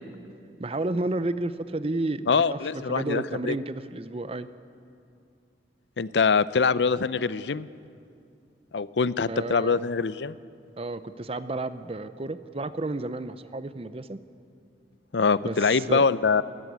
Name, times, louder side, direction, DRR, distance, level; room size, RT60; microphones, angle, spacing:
voice 1, 0.6-4.5 9.3-9.8 10.8-14.2 15.4-16.0, right 2 dB, 35° right, 12 dB, 0.7 m, -31 dB
voice 2, 2.3-3.6 6.0-7.7 8.7-10.4 15.1-16.4, left 5 dB, 80° left, 16 dB, 0.6 m, -24 dB
22.0 x 14.5 x 9.4 m, 2.4 s
head